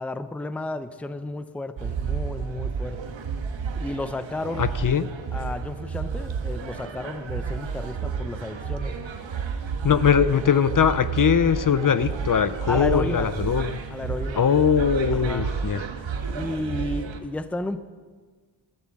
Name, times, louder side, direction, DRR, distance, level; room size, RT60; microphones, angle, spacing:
voice 1, 0.0-3.2 3.8-4.7 5.3-9.0 9.9-10.2 12.7-13.4 13.9-14.5 15.1-15.5 16.3-17.8, left 2 dB, 5° left, 11 dB, 0.5 m, -32 dB
sound 1, 1.8-17.2, right 6 dB, 80° right, 1.4 m, -31 dB
voice 2, 4.6-5.1 9.8-13.8 14.4-15.8, left 7 dB, 45° left, 14 dB, 0.6 m, -21 dB
15.0 x 12.0 x 7.5 m, 1.5 s
wide cardioid pair, 130°, 45 cm